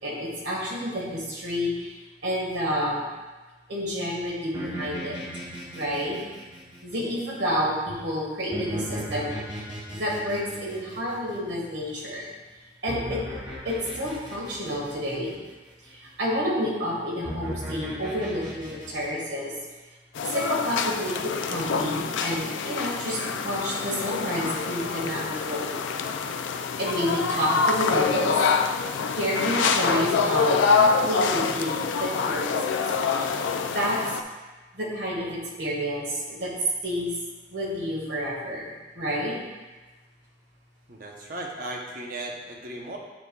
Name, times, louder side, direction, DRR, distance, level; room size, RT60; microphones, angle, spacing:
voice 1, 0.0-2.0 2.2-3.1 3.7-5.2 5.8-6.2 6.8-9.3 9.9-12.3 12.8-13.2 13.6-15.4 15.8-19.5 20.3-23.2 23.4-25.8 26.8-28.4 29.1-32.8 33.0-34.2 34.7-36.5 36.8-37.1 37.5-39.4, equal, 70° right, -4 dB, 1.7 m, -29 dB
sound 1, 4.5-7.4 8.5-12.0 12.9-15.5 17.2-19.1, equal, 25° right, 1.0 m, -37 dB
sound 2, 20.2-34.2, left 5 dB, 85° left, 0.4 m, -26 dB
voice 2, 40.9-43.0, right 1 dB, 45° right, 0 dB, 0.9 m, -36 dB
8.9 x 5.0 x 2.3 m, 1.2 s
head